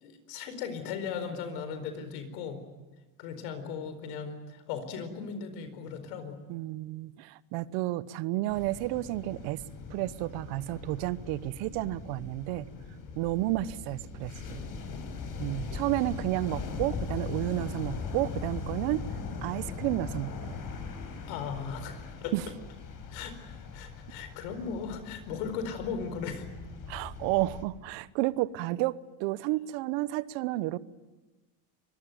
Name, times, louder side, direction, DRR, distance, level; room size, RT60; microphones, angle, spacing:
voice 1, 0.0-2.6 3.2-6.4 15.7-15.8 21.3-22.3 23.1-26.4, left 6 dB, 85° left, 10 dB, 4.5 m, -37 dB
voice 2, 6.5-9.6 9.9-12.7 13.1-14.6 15.4-19.0 19.4-20.5 22.3-22.5 26.9-30.8, right 17 dB, 80° right, 17 dB, 1.1 m, -31 dB
sound 1, 8.5-27.6, left 5 dB, 50° left, 5.3 m, -40 dB
24.5 x 21.5 x 9.2 m, 1.2 s
supercardioid pair, 105°, 43 cm